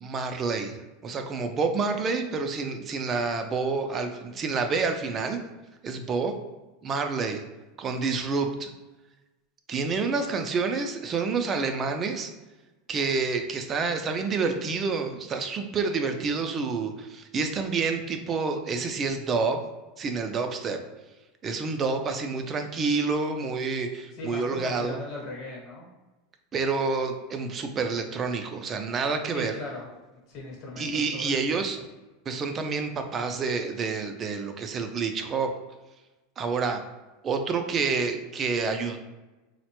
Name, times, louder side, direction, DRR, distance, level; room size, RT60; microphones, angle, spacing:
voice 1, 0.0-5.4 5.8-6.4 6.8-7.4 7.8-8.7 9.7-12.3 12.9-19.6 20.0-20.8 21.4-25.0 26.5-29.5 30.8-31.8 32.3-35.5 36.4-36.8 37.2-39.0, right 4 dB, 30° right, 6 dB, 0.4 m, -28 dB
voice 2, 24.1-25.9 29.3-29.9 30.1-31.7, left 2 dB, 45° left, -2 dB, 1.0 m, -39 dB
3.8 x 2.1 x 2.9 m, 1.1 s
supercardioid pair, 130°, 0 cm